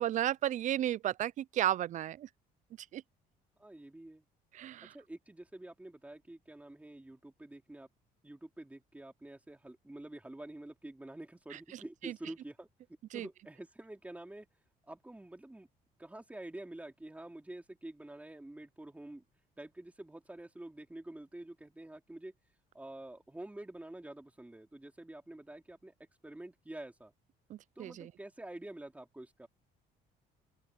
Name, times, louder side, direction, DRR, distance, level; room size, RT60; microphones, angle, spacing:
voice 1, 0.0-2.3 2.9-3.0 4.5-4.9 11.5-12.2 13.1-13.3 27.5-28.1, right 12 dB, 50° right, 0.4 m, -34 dB
voice 2, 3.6-4.2 4.9-7.9 8.2-12.7 13.1-14.5 14.9-15.7 16.0-19.2 19.6-22.3 22.7-25.9 26.2-27.1 27.8-29.5, right 1 dB, 10° right, 3.1 m, -48 dB
open air
cardioid pair, 110°, 17 cm